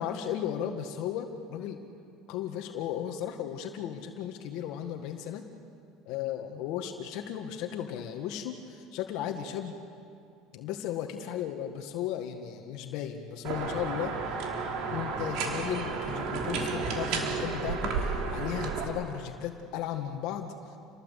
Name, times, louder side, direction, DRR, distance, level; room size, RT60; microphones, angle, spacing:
voice 1, 0.0-1.8 2.3-5.4 6.1-9.7 10.5-14.4 14.9-20.5, left 10 dB, 70° left, 4 dB, 1.8 m, -35 dB
sound 1, 13.4-18.8, right 4 dB, 65° right, 4.7 m, -32 dB
30.0 x 19.5 x 8.4 m, 2.5 s
supercardioid pair, 115°, 0 cm